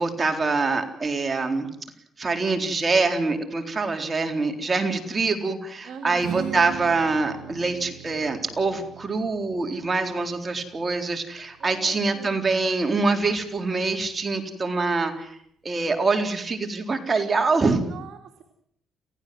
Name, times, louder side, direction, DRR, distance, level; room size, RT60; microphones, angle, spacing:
voice 1, 0.0-1.7 2.2-15.4 15.6-17.8, right 3 dB, 30° right, 5 dB, 4.0 m, -25 dB
voice 2, 3.8-4.3 5.8-6.8 11.6-12.4 17.9-18.4, right 5 dB, 70° right, 4 dB, 2.7 m, -42 dB
Strum, 6.2-12.5, right 9 dB, 85° right, 4.1 m, -41 dB
29.5 x 15.5 x 7.8 m, 0.68 s
cardioid pair, 90°, 0 cm